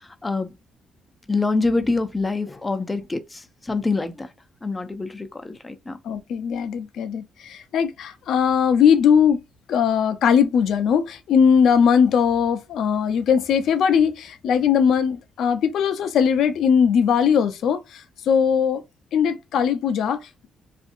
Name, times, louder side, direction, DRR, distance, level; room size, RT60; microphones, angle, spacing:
voice 1, 0.2-0.5 1.3-4.3 4.6-6.0, left 3 dB, 20° left, 0.5 m, -25 dB
voice 2, 6.0-9.4 9.7-18.8 19.1-20.5, left 7 dB, 75° left, 0.5 m, -20 dB
2.6 x 2.5 x 2.5 m
cardioid pair, 90°, 0 cm